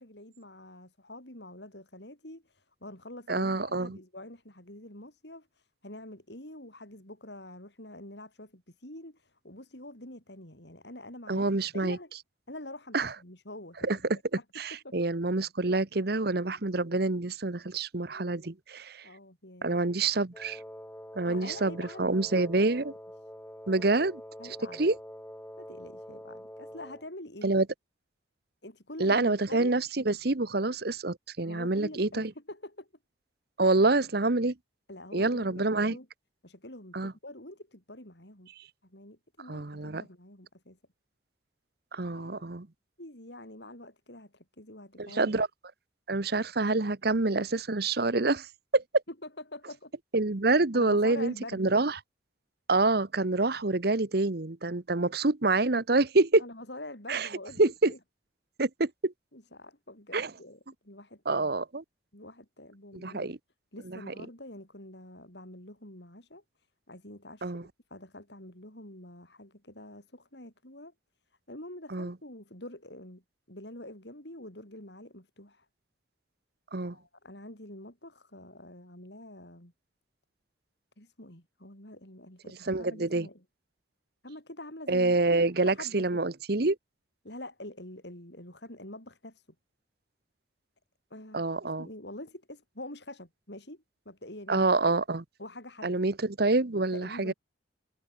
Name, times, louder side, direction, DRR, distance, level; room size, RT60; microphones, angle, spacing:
voice 1, 0.0-11.5 11.7-12.1 12.5-14.1 14.3-14.4 14.8-15.0 19.0-19.8 21.3-22.5 24.4-24.8 25.6-27.5 28.6-29.7 31.5-32.9 33.6-33.8 34.9-36.1 36.4-38.5 38.8-40.8 42.1-42.4 43.0-45.3 49.2-49.9 50.7-51.7 56.4-58.0 59.3-61.5 62.1-63.3 63.7-70.9 71.5-73.2 73.5-75.7 76.9-79.7 81.0-83.4 84.2-85.1 85.6-86.2 87.2-89.5 91.1-91.5 91.8-94.7 95.4-96.0 96.9-97.3, left 1 dB, 60° left, 6.3 m, -46 dB
voice 2, 3.3-4.0 11.3-12.0 12.9-13.1 13.8-19.1 19.6-20.6 21.1-22.9 23.7-24.2 24.8-25.0 27.4-27.7 29.0-32.3 33.6-34.6 35.1-36.0 36.9-37.1 38.6-38.7 39.5-40.0 41.9-42.7 45.0-45.5 46.1-48.5 48.7-48.8 50.1-52.0 52.7-56.4 57.1-57.3 57.6-57.9 58.6-59.1 60.1-60.3 61.3-61.8 62.9-63.4 63.9-64.1 67.4-67.6 71.9-72.1 76.7-77.0 82.7-83.3 84.9-86.8 91.3-91.9 94.5-95.2 95.8-97.3, right 3 dB, 55° right, 1.0 m, -27 dB
Wind instrument woodwind instrument, 20.3-27.1, equal, 10° left, 5.4 m, -46 dB
head